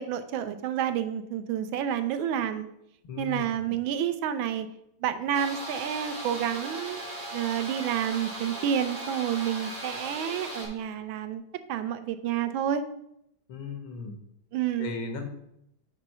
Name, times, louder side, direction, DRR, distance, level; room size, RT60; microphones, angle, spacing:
voice 1, 0.0-2.7 3.2-4.7 5.0-7.0 7.3-11.4 11.7-12.8 14.5-14.9, right 9 dB, 80° right, 10 dB, 1.4 m, -29 dB
voice 2, 3.0-3.5 13.5-14.2 14.8-15.3, left 5 dB, 80° left, 6 dB, 1.8 m, -36 dB
sound 1, 5.3-10.7, right 1 dB, 50° right, 3.0 m, -38 dB
6.1 x 4.4 x 5.3 m, 0.78 s
omnidirectional pair, 2.2 m